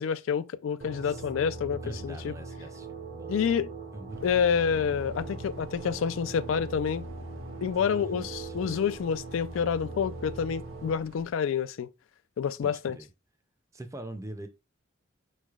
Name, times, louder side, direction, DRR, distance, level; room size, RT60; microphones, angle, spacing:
voice 1, 0.0-2.3 3.3-3.7 4.2-7.1 7.6-11.9 12.4-13.0, left 7 dB, 80° left, 0.3 m, -28 dB
sound 1, 0.8-10.9, right 3 dB, 50° right, 0.7 m, -40 dB
voice 2, 1.8-3.3 3.9-4.3 7.8-8.9 12.6-13.1 13.7-14.5, right 1 dB, 15° right, 0.4 m, -43 dB
sound 2, 4.1-11.3, right 3 dB, 90° right, 0.6 m, -50 dB
5.2 x 3.2 x 2.4 m
head